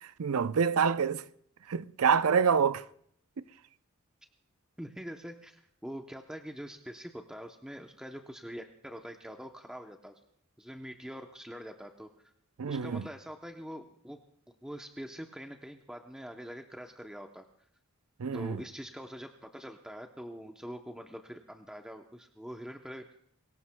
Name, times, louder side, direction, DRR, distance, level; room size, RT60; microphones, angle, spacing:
voice 1, 0.0-1.2 1.7-2.8 12.6-13.1 18.2-18.6, right 6 dB, 90° right, 0.5 m, -27 dB
voice 2, 4.8-10.2 10.6-12.3 12.7-14.2 14.6-17.4 18.3-23.1, equal, 5° right, 0.7 m, -44 dB
23.5 x 18.5 x 2.2 m
head